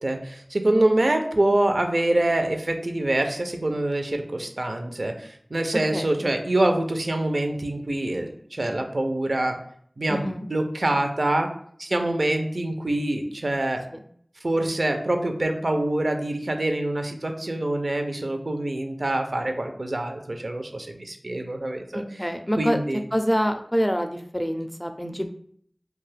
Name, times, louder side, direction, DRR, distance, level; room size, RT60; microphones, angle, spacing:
voice 1, 0.0-9.6 10.0-11.5 11.8-13.8 14.4-22.0 22.6-23.0, right 1 dB, 65° right, 5 dB, 0.5 m, -25 dB
voice 2, 10.1-10.5 13.9-14.0 21.9-22.8 23.1-25.3, equal, 10° left, 6 dB, 0.4 m, -26 dB
2.5 x 2.3 x 3.3 m, 0.63 s
wide cardioid pair, 45°, 0 cm